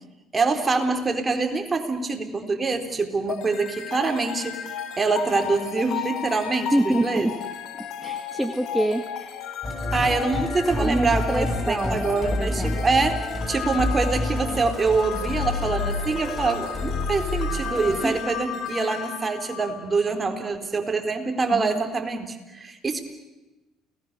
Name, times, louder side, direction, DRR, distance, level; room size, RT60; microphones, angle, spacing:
voice 1, 0.3-4.6 5.0-7.3 9.9-13.2 13.5-23.0, right 4 dB, 30° right, 5 dB, 4.2 m, -25 dB
sound 1, 3.3-20.4, left 8 dB, 65° left, 2.6 m, -34 dB
voice 2, 6.7-7.3 7.8-9.4 10.7-12.1 12.4-12.8 18.0-18.2 21.5-21.8, right 1 dB, 5° right, 4 dB, 2.0 m, -26 dB
Musical instrument, 9.6-18.1, left 2 dB, 30° left, 7.7 m, -29 dB
29.5 x 19.5 x 7.0 m, 1.0 s
hypercardioid pair, 70°, 0 cm